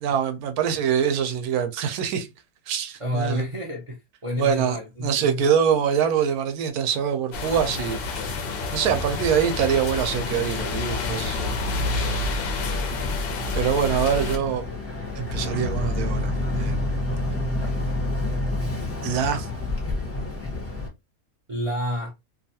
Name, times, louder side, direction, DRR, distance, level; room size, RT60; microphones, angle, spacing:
voice 1, 0.0-2.3 2.7-3.4 4.4-8.5 8.7-11.6 11.9-12.3 13.5-14.6 15.2-17.0 19.0-19.5, right 8 dB, 85° right, 1.1 m, -24 dB
voice 2, 3.0-5.4 12.4-13.2 17.6-17.9 21.5-22.1, equal, 60° right, 0.3 m, -30 dB
sound 1, 7.3-14.4, left 3 dB, 65° left, 0.6 m, -29 dB
Boat Water vehicle, 10.1-20.9, left 2 dB, 15° left, 0.6 m, -29 dB
2.7 x 2.3 x 2.7 m
omnidirectional pair, 1.5 m